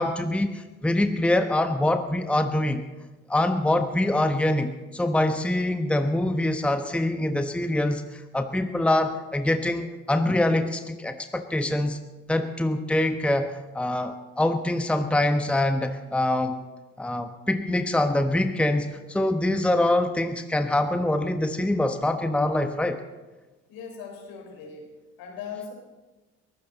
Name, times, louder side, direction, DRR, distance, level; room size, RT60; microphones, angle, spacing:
voice 1, 0.0-2.8 3.3-12.0 12.3-16.6 17.0-23.0, left 1 dB, 5° left, 7 dB, 1.1 m, -24 dB
voice 2, 23.7-24.9 25.2-25.7, left 6 dB, 70° left, 1 dB, 4.7 m, -39 dB
23.0 x 15.5 x 4.1 m, 1.2 s
hypercardioid pair, 55°, 37 cm